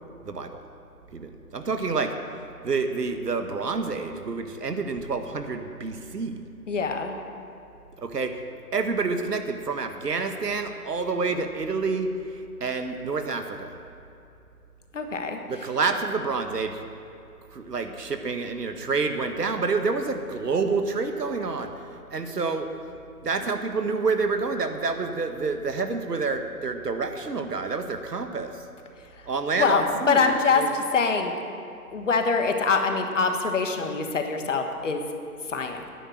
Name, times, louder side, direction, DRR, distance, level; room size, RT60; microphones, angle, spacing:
voice 1, 0.2-0.6 1.1-2.1 2.6-6.4 8.0-8.3 8.7-13.7 15.5-16.8 17.5-21.7 22.1-22.7 23.2-28.5 29.3-30.8, right 4 dB, 85° right, 6 dB, 1.5 m, -28 dB
voice 2, 6.7-7.1 14.9-15.4 29.6-31.3 31.9-35.0 35.5-35.8, left 4 dB, 50° left, 5 dB, 1.4 m, -24 dB
12.5 x 10.0 x 6.4 m, 2.6 s
hypercardioid pair, 160°, 47 cm